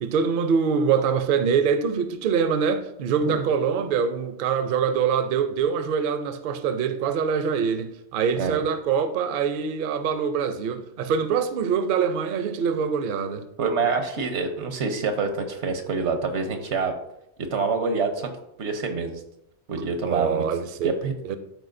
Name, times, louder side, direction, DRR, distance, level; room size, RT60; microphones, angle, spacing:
voice 1, 0.0-13.4 20.0-20.9 21.2-21.4, right 6 dB, 60° right, 0.6 m, -24 dB
voice 2, 13.6-16.9 17.5-18.3 18.6-19.2 19.7-20.4 20.8-21.1, right 4 dB, 85° right, 1.2 m, -26 dB
12.5 x 4.4 x 2.6 m
omnidirectional pair, 1.1 m